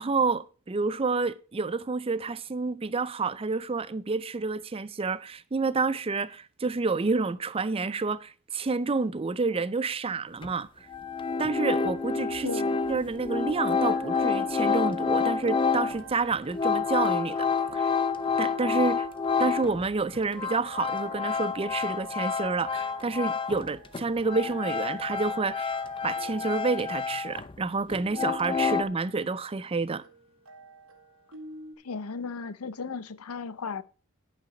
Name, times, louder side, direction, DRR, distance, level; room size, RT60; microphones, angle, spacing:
voice 1, 0.0-10.7 11.4-12.5 12.9-17.5 17.7-17.9 18.4-19.1 19.4-25.8 26.0-30.0, right 4 dB, 25° right, 0.5 m, -29 dB
sound 1, 10.4-10.5 10.9-19.8 20.1-23.7 23.9-27.6 27.9-28.8, left 5 dB, 25° left, 0.6 m, -29 dB
voice 2, 12.4-12.8 31.8-33.8, left 5 dB, 85° left, 0.6 m, -35 dB
sound 2, 12.4-31.7, right 4 dB, 80° right, 2.8 m, -48 dB
10.5 x 5.8 x 6.0 m
head